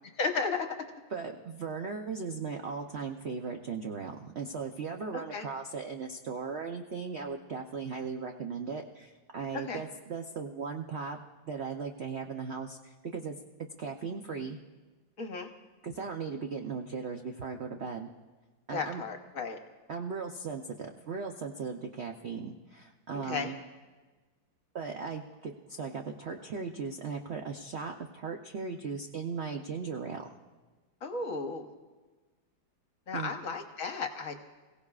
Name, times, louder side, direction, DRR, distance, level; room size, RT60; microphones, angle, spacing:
voice 1, 0.2-0.7 5.1-5.4 9.5-9.8 15.2-15.5 18.7-19.6 23.1-23.5 31.0-31.7 33.1-34.4, left 4 dB, 50° left, 4 dB, 1.2 m, -34 dB
voice 2, 1.1-11.2 11.5-13.3 13.8-14.6 15.8-18.1 18.7-19.0 19.9-23.6 24.7-30.3 33.1-33.3, right 5 dB, 80° right, 3 dB, 0.5 m, -37 dB
27.5 x 16.5 x 2.4 m, 1.3 s
omnidirectional pair, 2.1 m